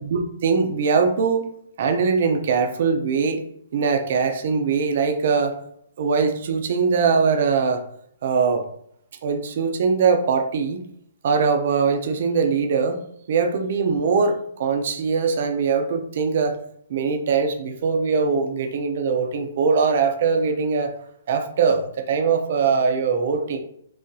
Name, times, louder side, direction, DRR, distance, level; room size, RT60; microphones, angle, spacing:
voice 1, 0.0-1.5 1.8-3.4 3.7-5.5 6.0-7.8 8.2-8.6 9.2-10.8 11.2-13.0 13.3-16.6 16.9-20.9 21.3-23.6, right 5 dB, 45° right, 5 dB, 0.5 m, -21 dB
3.9 x 2.8 x 2.6 m, 0.69 s
hypercardioid pair, 170°, 0 cm